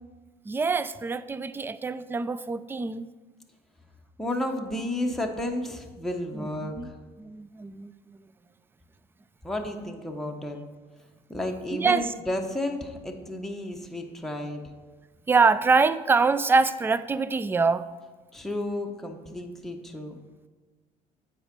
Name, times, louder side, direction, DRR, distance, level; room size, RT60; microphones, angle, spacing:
voice 1, 0.5-3.1 6.3-6.9 7.2-8.2 11.7-12.1 15.3-17.9, right 4 dB, 15° right, 15 dB, 0.3 m, -25 dB
voice 2, 4.2-6.8 9.4-10.6 11.3-14.6 18.3-20.1, left 1 dB, ahead, 2 dB, 0.9 m, -32 dB
8.0 x 4.3 x 5.2 m, 1.3 s
supercardioid pair, 85°, 17 cm